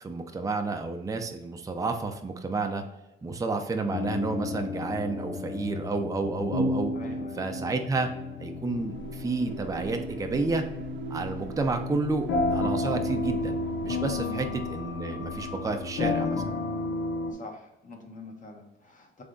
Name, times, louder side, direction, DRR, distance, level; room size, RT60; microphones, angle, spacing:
voice 1, 0.0-2.8 3.2-6.9 7.4-8.1 8.4-10.6 11.1-16.6, right 3 dB, 15° right, 5 dB, 0.5 m, -30 dB
sound 1, 3.9-17.3, left 3 dB, 70° left, 0.7 m, -32 dB
voice 2, 6.9-7.4 14.2-14.5 17.3-19.2, left 2 dB, 40° left, 2 dB, 1.1 m, -44 dB
sound 2, 8.5-16.3, right 7 dB, 70° right, 0.4 m, -43 dB
3.7 x 3.3 x 3.9 m, 0.96 s
cardioid pair, 90°, 20 cm